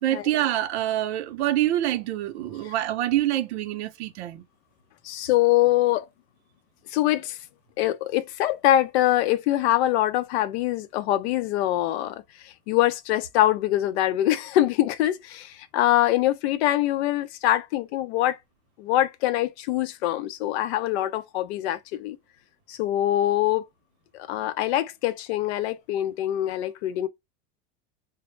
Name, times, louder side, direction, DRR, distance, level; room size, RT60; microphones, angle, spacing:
voice 1, 0.0-4.4, right 13 dB, 80° right, 0.6 m, -26 dB
voice 2, 5.0-6.0 6.9-7.4 7.8-12.2 12.7-18.4 18.8-22.2 22.7-23.6 24.3-27.1, left 14 dB, 80° left, 0.5 m, -24 dB
2.0 x 2.0 x 3.0 m
supercardioid pair, 125°, 32 cm